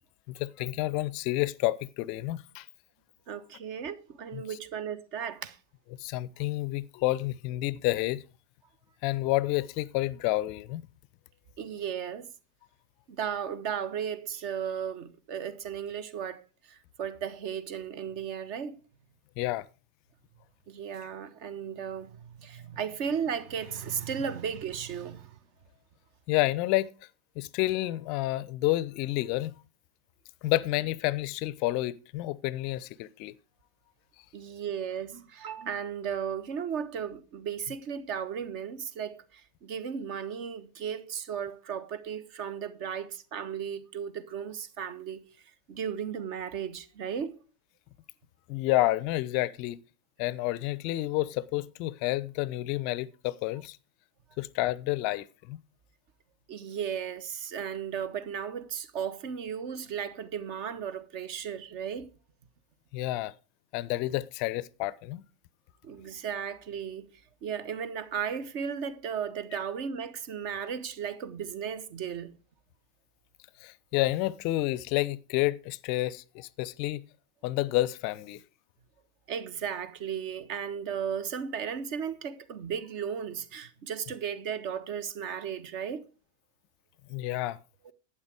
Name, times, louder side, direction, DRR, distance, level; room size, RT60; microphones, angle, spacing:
voice 1, 0.3-2.7 4.3-4.4 6.0-8.2 9.0-10.8 19.4-19.6 26.3-26.9 27.4-29.5 30.4-33.3 48.5-49.8 50.2-53.8 54.4-55.6 62.9-63.3 63.7-65.2 73.6-77.0 77.4-78.4 87.1-87.6, left 17 dB, 45° left, 0.5 m, -29 dB
voice 2, 3.3-5.6 11.6-12.3 13.1-16.4 16.7-18.8 20.7-25.4 34.3-45.3 45.7-47.3 56.5-62.1 65.8-67.1 67.4-72.3 79.3-86.1, right 7 dB, 45° right, 1.2 m, -35 dB
12.0 x 8.7 x 5.0 m
figure-of-eight pair, 90°, 0 cm